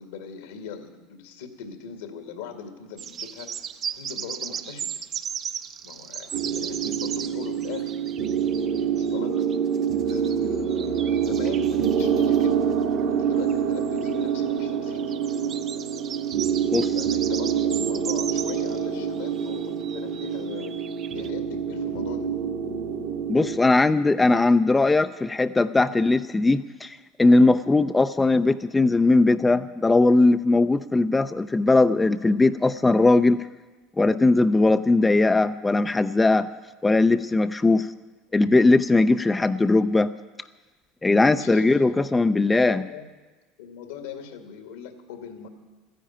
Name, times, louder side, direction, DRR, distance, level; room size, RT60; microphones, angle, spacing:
voice 1, 0.0-3.5 3.9-4.9 5.8-7.9 9.0-9.4 10.0-12.6 13.1-15.6 16.9-20.8 21.1-22.3 41.2-43.1 43.6-45.5, left 7 dB, 80° left, 5 dB, 2.1 m, -40 dB
sound 1, 3.0-10.3 10.7-12.5 13.5-18.9 19.1-21.3, right 8 dB, 45° right, 0.8 m, -37 dB
sound 2, 6.3-23.6, right 7 dB, 70° right, 2.2 m, -26 dB
voice 2, 23.3-33.5 34.0-36.5 36.8-37.9 38.3-40.1 41.0-42.8, left 2 dB, 15° left, 10 dB, 0.5 m, -19 dB
14.0 x 10.5 x 8.9 m, 1.3 s
hypercardioid pair, 80°, 0 cm